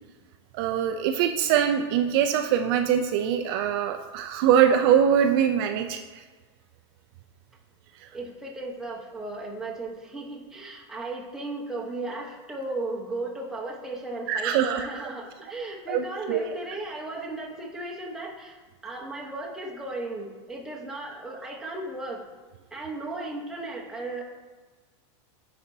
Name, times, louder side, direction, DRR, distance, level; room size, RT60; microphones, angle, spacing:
voice 1, 0.5-6.0 14.3-14.8 15.9-16.4, right 9 dB, 50° right, 6 dB, 0.4 m, -23 dB
voice 2, 8.1-22.2 22.7-24.2, right 2 dB, 5° right, -3 dB, 0.9 m, -35 dB
10.0 x 4.2 x 2.7 m, 1.4 s
supercardioid pair, 145°, 16 cm